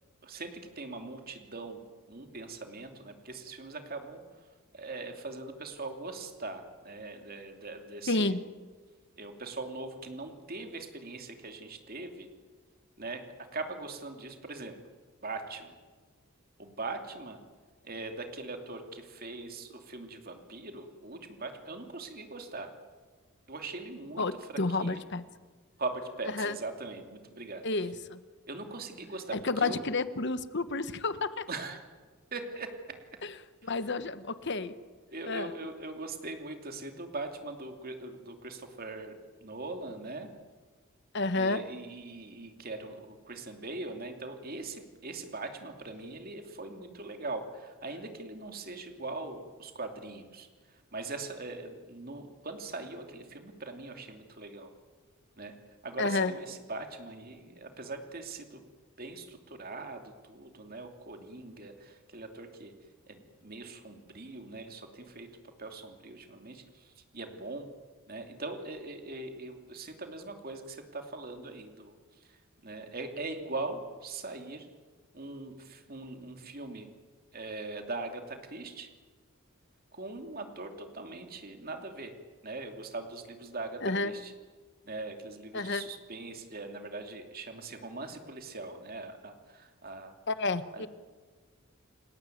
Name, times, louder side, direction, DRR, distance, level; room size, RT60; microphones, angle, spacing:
voice 1, 0.2-1.8 2.1-4.2 4.7-8.4 9.2-12.3 13.0-14.8 15.2-15.7 16.6-17.4 17.8-22.7 23.5-25.0 25.8-27.6 28.5-29.8 31.5-31.8 32.3-32.7 33.6-33.7 35.1-40.3 41.3-54.7 55.4-55.6 55.8-58.6 59.0-62.7 63.1-67.7 68.1-72.0 72.2-72.4 72.6-74.7 75.1-76.9 77.3-78.9 79.9-82.1 82.4-84.3 84.8-90.2 90.7-90.9, right 3 dB, 40° right, 5 dB, 2.9 m, -41 dB
voice 2, 8.1-8.4 24.2-25.2 26.4-26.6 27.6-28.2 29.3-31.5 33.2-33.3 33.6-34.7 35.3-35.5 41.1-41.6 56.0-56.3 83.8-84.1 85.5-85.8 90.3-90.9, left 3 dB, 50° left, 13 dB, 1.2 m, -30 dB
29.5 x 19.5 x 9.3 m, 1.4 s
head